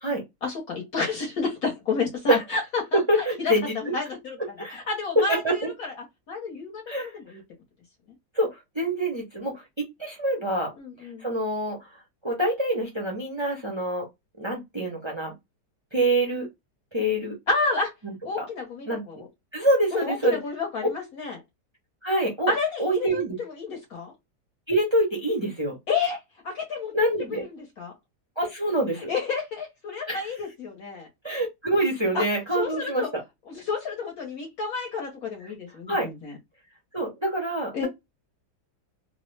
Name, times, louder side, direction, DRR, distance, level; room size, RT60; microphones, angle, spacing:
voice 1, 0.4-4.3 4.7-5.4 6.3-7.4 10.8-11.3 17.5-17.9 18.2-19.3 19.9-21.4 22.5-24.1 25.9-27.9 29.1-31.1 32.1-32.3 32.5-33.1 33.5-36.3 37.7-37.9, left 4 dB, 65° left, 1.3 m, -30 dB
voice 2, 2.9-3.9 4.6-4.8 5.2-5.6 6.9-7.1 8.3-10.7 11.2-11.8 12.2-14.1 14.4-15.3 15.9-16.5 16.9-17.4 18.0-18.4 18.9-19.0 19.5-20.4 22.0-22.5 22.8-23.4 24.7-25.8 26.9-27.4 28.4-29.1 30.1-30.3 31.2-33.1 35.9-36.1 36.9-37.9, right 1 dB, 35° right, 0.4 m, -25 dB
3.1 x 2.0 x 3.2 m
omnidirectional pair, 1.8 m